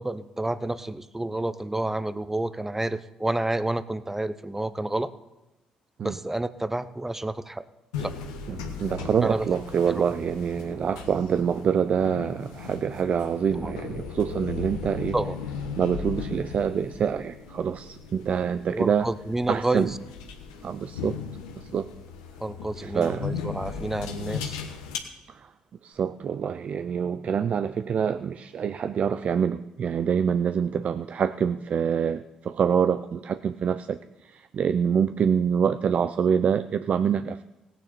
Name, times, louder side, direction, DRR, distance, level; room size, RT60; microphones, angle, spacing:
voice 1, 0.0-5.1 6.0-7.6 8.0-8.1 9.2-9.5 10.0-10.1 13.6-13.7 15.1-15.4 18.7-20.0 22.4-24.6, right 2 dB, 10° right, 15 dB, 0.7 m, -29 dB
sound 1, 7.9-25.0, left 6 dB, 90° left, 1.1 m, -37 dB
voice 2, 8.5-15.2 15.7-19.1 19.5-19.9 20.6-21.2 21.6-21.9 22.8-23.3 25.3-25.5 25.8-37.4, right 7 dB, 50° right, 12 dB, 0.4 m, -26 dB
17.0 x 9.2 x 4.3 m, 1.0 s
hypercardioid pair, 55°, 3 cm